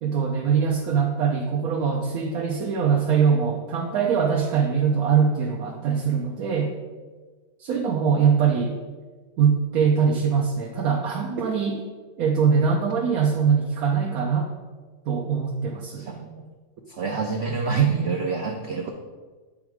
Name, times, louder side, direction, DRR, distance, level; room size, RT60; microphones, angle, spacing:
voice 1, 0.0-6.7 7.6-8.8 9.4-11.8 12.2-14.5 15.1-16.1, right 6 dB, 65° right, 0 dB, 1.0 m, -22 dB
voice 2, 16.0-16.4 16.9-18.9, right 6 dB, 80° right, 2 dB, 0.5 m, -26 dB
7.9 x 3.7 x 4.7 m, 1.4 s
omnidirectional pair, 1.9 m